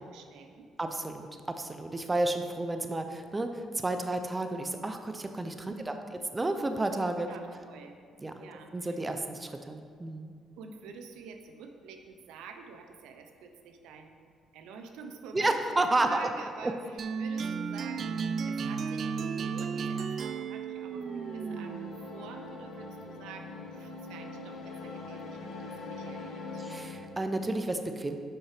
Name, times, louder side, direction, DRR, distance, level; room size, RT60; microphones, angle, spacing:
voice 1, 0.0-0.7 5.7-6.1 7.3-8.0 8.3-9.2 10.6-26.6, right 5 dB, 85° right, 5 dB, 0.7 m, -48 dB
voice 2, 0.8-7.3 8.2-8.3 8.7-10.3 15.3-16.2 16.6-16.7 26.6-28.2, right 2 dB, 20° right, 7 dB, 0.6 m, -31 dB
sound 1, 17.0-22.1, right 5 dB, 55° right, 0.3 m, -34 dB
sound 2, 20.7-27.0, left 3 dB, 65° left, 1.1 m, -42 dB
7.7 x 5.5 x 4.9 m, 2.1 s
cardioid pair, 80°, 0 cm